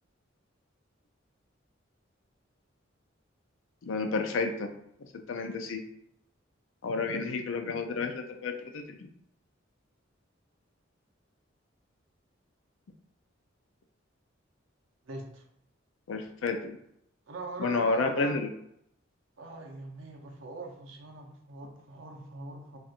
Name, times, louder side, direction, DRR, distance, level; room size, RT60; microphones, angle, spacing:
voice 1, 3.8-4.7 5.3-5.8 6.8-9.0 16.1-16.8 17.6-18.5, left 3 dB, 75° left, 5 dB, 0.4 m, -30 dB
voice 2, 15.0-15.4 17.3-18.4 19.4-22.8, right 2 dB, 75° right, 2 dB, 0.7 m, -41 dB
4.2 x 2.4 x 2.5 m, 0.73 s
head